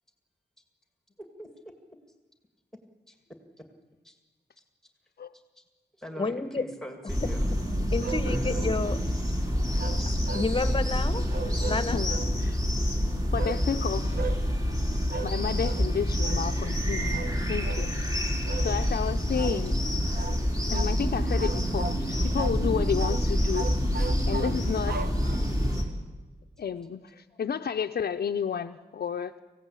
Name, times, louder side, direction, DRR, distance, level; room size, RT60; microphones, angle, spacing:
voice 1, 1.2-1.5 3.1-3.2 3.6-3.7 4.0-4.2 6.0-7.4, equal, 5° left, 5 dB, 2.1 m, -42 dB
voice 2, 6.2-6.6 7.4-7.5 7.9-9.0 10.3-12.0, left 3 dB, 30° left, 11 dB, 1.1 m, -30 dB
sound 1, 7.1-25.8, equal, 20° right, 3.5 m, -27 dB
sound 2, 8.0-8.8 9.8-10.8 11.3-12.3 13.4-13.6 14.1-14.4 15.1-15.4 15.6-15.9 16.2-16.5 17.1-17.3 17.6-17.9 18.4-18.7 19.3-19.6 20.1-20.4 20.7-21.0 21.4-22.0 22.3-22.6 23.0-23.2 23.5-25.7, right 4 dB, 65° right, 1.1 m, -37 dB
voice 3, 11.9-12.6 13.3-14.2 15.2-17.2 17.5-17.9 18.6-19.8 20.7-23.7 24.3-25.0 26.6-29.3, left 7 dB, 65° left, 5 dB, 0.6 m, -31 dB
25.5 x 16.5 x 8.4 m, 1.3 s
wide cardioid pair, 145°, 17 cm